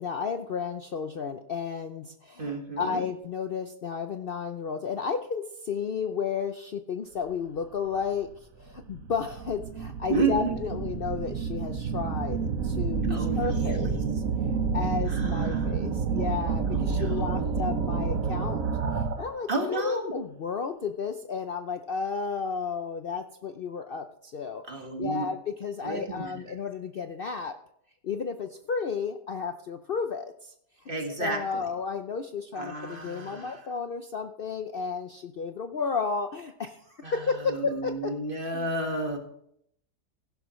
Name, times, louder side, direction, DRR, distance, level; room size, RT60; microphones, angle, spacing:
voice 1, 0.0-8.3 8.6-14.2 14.7-18.6 18.9-24.6 25.0-27.5 28.0-30.5 31.2-38.1 38.5-38.7, left 5 dB, 65° left, 7 dB, 0.5 m, -32 dB
voice 2, 2.4-3.0 10.1-10.6 13.1-14.0 15.1-15.7 16.7-17.6 19.5-20.1 24.6-25.3 25.8-26.5 30.9-31.7 32.5-33.7 37.0-39.2, right 3 dB, 35° right, 3 dB, 1.9 m, -32 dB
sound 1, 8.0-8.1 8.7-19.4, right 5 dB, 60° right, 1.3 m, -29 dB
16.0 x 11.0 x 3.1 m, 0.72 s
omnidirectional pair, 1.7 m